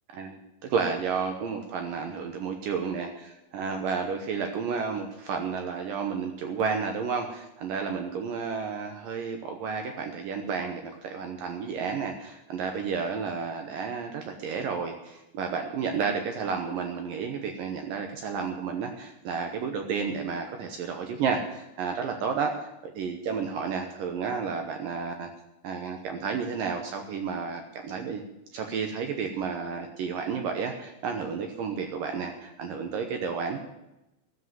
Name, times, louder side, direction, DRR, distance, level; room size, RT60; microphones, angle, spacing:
voice 1, 0.1-25.3 25.6-28.2 28.5-33.6, right 5 dB, 80° right, 5 dB, 2.0 m, -31 dB
12.5 x 7.3 x 9.5 m, 0.92 s
omnidirectional pair, 5.3 m